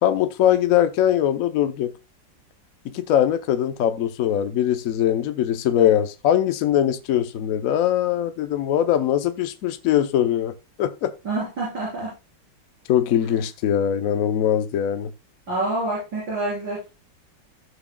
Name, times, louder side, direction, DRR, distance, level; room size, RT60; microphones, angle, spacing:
voice 1, 0.0-1.9 2.9-10.5 10.8-11.1 12.9-15.1, left 10 dB, 60° left, 1.0 m, -21 dB
voice 2, 11.2-12.1 15.5-16.9, right 2 dB, 85° right, 4.8 m, -27 dB
16.0 x 6.1 x 2.2 m
omnidirectional pair, 2.0 m